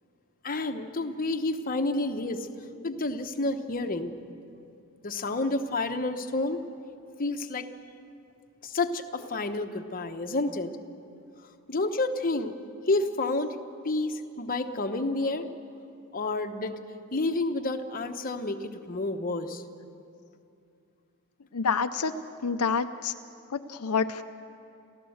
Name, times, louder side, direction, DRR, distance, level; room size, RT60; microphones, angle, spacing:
voice 1, 0.4-2.5 2.8-4.1 5.0-6.6 7.2-7.7 8.6-10.7 11.7-12.5 12.9-13.6 13.8-15.5 16.1-16.8 17.1-19.6, left 2 dB, 40° left, 6 dB, 1.0 m, -29 dB
voice 2, 21.5-22.1 22.4-23.1 23.5-24.2, left 5 dB, 80° left, 8 dB, 0.7 m, -27 dB
29.5 x 14.0 x 7.9 m, 2.6 s
head